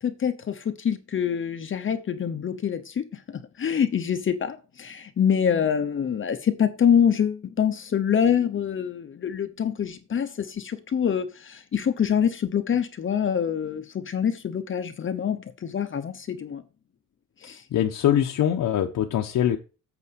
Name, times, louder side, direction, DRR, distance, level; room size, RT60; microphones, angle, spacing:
voice 1, 0.0-3.2 3.6-16.6 17.4-17.6, left 8 dB, 40° left, 0.8 m, -25 dB
voice 2, 17.7-19.6, left 10 dB, 70° left, 1.0 m, -23 dB
8.5 x 5.3 x 5.3 m
wide cardioid pair, 175°, 33 cm